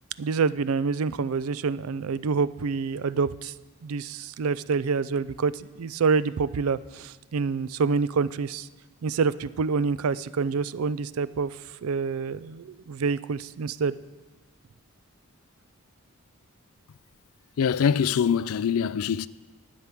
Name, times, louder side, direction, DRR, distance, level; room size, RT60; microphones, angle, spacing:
voice 1, 0.2-3.5 3.8-8.7 9.0-13.9, right 5 dB, 75° right, 0.4 m, -27 dB
voice 2, 17.6-19.3, left 7 dB, 80° left, 0.4 m, -23 dB
11.5 x 9.2 x 6.0 m
head